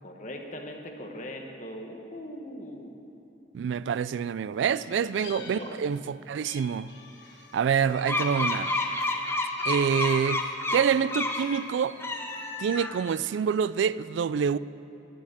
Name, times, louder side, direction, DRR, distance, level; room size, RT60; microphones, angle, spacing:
voice 1, 0.0-3.0 4.9-5.8, equal, 45° left, 1.4 m, -41 dB
voice 2, 3.5-6.9 7.5-8.7 9.6-12.0 12.6-14.6, right 7 dB, 85° right, 0.3 m, -26 dB
Meow, 4.7-6.1 6.4-9.2 9.6-10.6 11.1-11.9, left 2 dB, 70° left, 1.4 m, -45 dB
sound 1, 8.0-11.5 11.9-13.1, left 2 dB, 15° left, 0.8 m, -30 dB
11.0 x 10.5 x 7.6 m
head